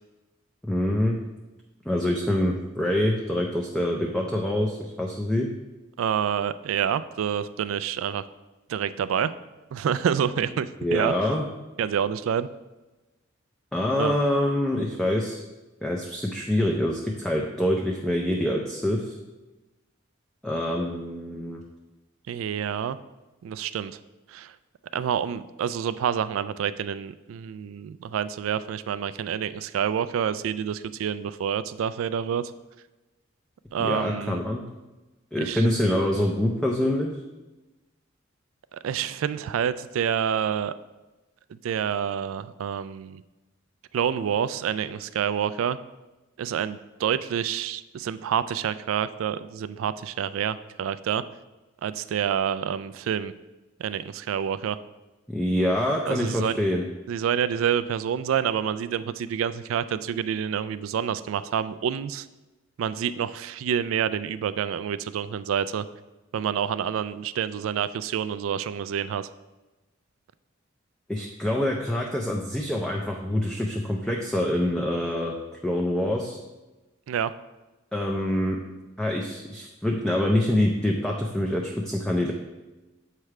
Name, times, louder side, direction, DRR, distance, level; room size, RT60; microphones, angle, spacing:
voice 1, 0.6-1.2 1.9-5.5 10.8-11.4 13.7-15.4 15.8-19.1 20.4-21.6 33.8-34.6 35.3-37.1 55.3-56.8 71.1-75.3 75.6-76.4 77.9-78.6 79.0-82.3, left 1 dB, 5° left, -1 dB, 0.4 m, -25 dB
voice 2, 6.0-8.2 8.7-9.3 9.7-11.1 11.8-12.5 14.0-14.1 22.3-23.0 23.4-24.0 24.3-24.6 24.9-32.5 33.7-34.4 35.4-35.7 38.8-40.7 41.6-43.2 43.9-45.8 46.4-51.2 51.8-53.3 53.8-54.8 56.1-56.6 57.1-62.3 62.8-65.9 66.3-69.3 77.1-77.3, right 8 dB, 90° right, 16 dB, 0.3 m, -28 dB
7.5 x 3.3 x 4.7 m, 1.1 s
head